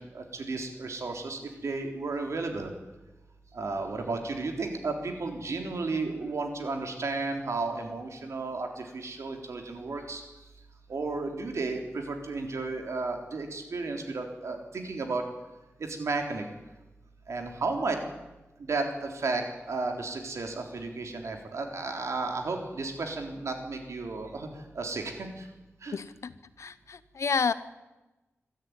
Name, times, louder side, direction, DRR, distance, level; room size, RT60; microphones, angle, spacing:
voice 1, 0.0-2.7 3.5-10.2 10.9-15.2 15.8-16.4 17.3-18.0 18.6-24.5 24.7-25.5 25.8-26.0, right 3 dB, 80° right, 4 dB, 3.7 m, -33 dB
voice 2, 25.9-26.3 26.6-27.5, left 5 dB, 80° left, 14 dB, 1.0 m, -30 dB
24.0 x 13.0 x 9.6 m, 1.1 s
wide cardioid pair, 120°, 5 cm